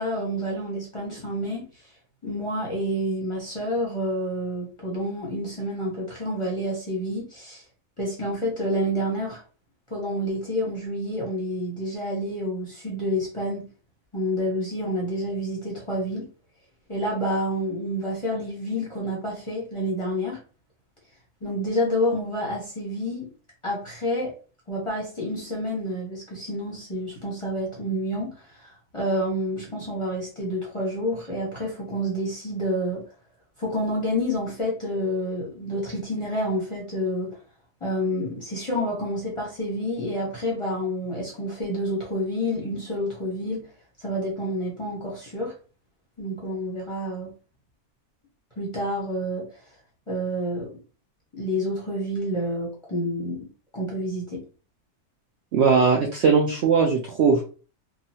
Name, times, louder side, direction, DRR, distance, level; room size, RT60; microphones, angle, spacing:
voice 1, 0.0-1.7 2.2-7.6 8.0-9.4 9.9-13.6 14.1-16.3 16.9-20.4 21.4-23.3 23.6-24.3 24.7-33.0 33.6-37.4 37.8-43.7 44.0-45.5 46.2-47.3 48.6-49.6 50.1-50.8 51.3-53.5 53.7-54.4, equal, 25° left, 0.8 m, -28 dB
voice 2, 55.5-57.5, right 5 dB, 65° right, 0.7 m, -19 dB
2.9 x 2.3 x 2.7 m
omnidirectional pair, 1.5 m